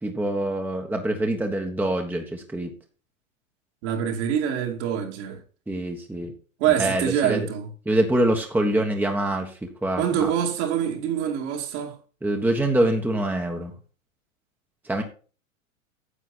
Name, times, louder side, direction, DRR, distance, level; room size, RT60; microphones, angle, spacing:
voice 1, 0.0-2.7 5.7-6.3 6.8-7.5 7.8-10.3 12.2-13.7 14.8-15.0, right 1 dB, 5° right, 1.4 m, -25 dB
voice 2, 3.8-5.4 6.6-7.7 10.0-11.9, right 9 dB, 55° right, 2.8 m, -25 dB
9.9 x 7.4 x 4.2 m
hypercardioid pair, 100°, 41 cm